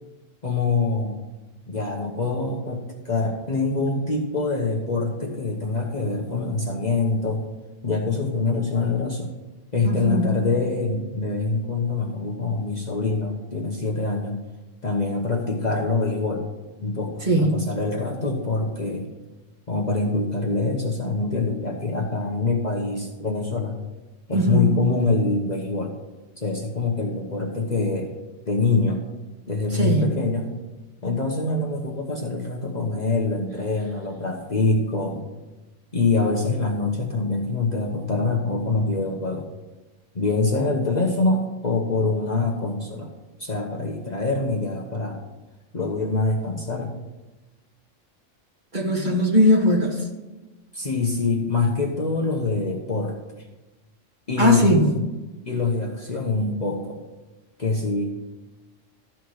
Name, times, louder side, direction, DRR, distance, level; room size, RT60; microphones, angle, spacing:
voice 1, 0.4-1.2 1.7-7.4 7.8-9.3 9.7-14.4 14.8-16.4 16.8-19.1 19.7-23.8 24.3-26.0 26.4-28.1 28.5-29.0 29.5-30.5 31.0-35.2 35.9-39.5 40.1-43.1 43.4-45.2 45.7-46.9 50.7-53.1 54.3-54.8 55.4-57.0 57.6-58.1, left 3 dB, 35° left, -1 dB, 1.1 m, -25 dB
voice 2, 9.8-10.3 17.2-17.6 24.3-24.8 29.7-30.1 48.7-50.0 54.4-54.9, equal, 35° right, -3 dB, 1.9 m, -19 dB
13.5 x 4.5 x 6.3 m, 1.1 s
omnidirectional pair, 1.3 m